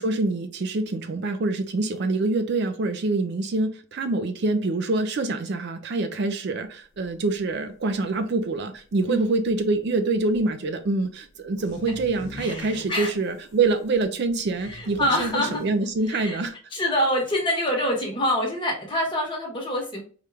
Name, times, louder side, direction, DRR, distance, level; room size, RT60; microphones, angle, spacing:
voice 1, 0.0-16.6, right 3 dB, 50° right, 8 dB, 0.4 m, -25 dB
sound 1, 6.9-7.1 7.4-7.5 7.9-8.0 8.4-8.5 9.0-9.1 9.2-9.6 10.3-10.4 10.9-11.0 11.3-16.5, left 1 dB, 55° left, 0.7 m, -43 dB
voice 2, 12.4-13.1 14.6-15.6 16.1-16.4 16.7-20.0, left 1 dB, 20° left, -1 dB, 1.1 m, -26 dB
4.4 x 2.4 x 3.3 m, 0.40 s
head